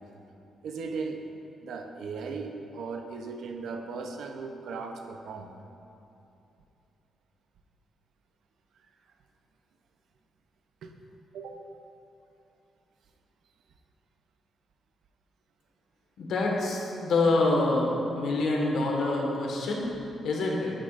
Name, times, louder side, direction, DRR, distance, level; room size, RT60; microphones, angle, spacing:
voice 1, 0.6-1.2 1.6-5.5 10.8-10.9 11.3-11.6, right 4 dB, 75° right, 4 dB, 0.7 m, -37 dB
voice 2, 16.2-19.8 20.2-20.7, left 2 dB, 75° left, -1 dB, 1.6 m, -26 dB
10.0 x 9.3 x 2.6 m, 2.8 s
cardioid pair, 130°, 0 cm